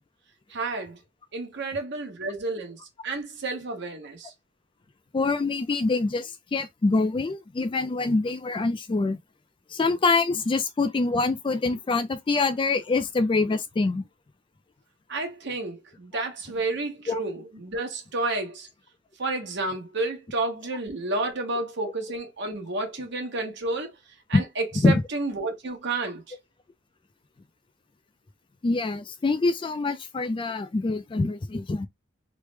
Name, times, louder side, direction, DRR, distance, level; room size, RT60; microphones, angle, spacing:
voice 1, 0.5-1.0 1.3-4.3 15.1-18.7 19.2-23.9 24.3-26.2, right 2 dB, 65° right, 1.0 m, -31 dB
voice 2, 5.1-9.2 9.7-14.0 17.1-17.2 24.3-24.4 24.8-24.9 28.6-31.9, left 3 dB, 25° left, 0.3 m, -25 dB
3.2 x 2.1 x 3.2 m
head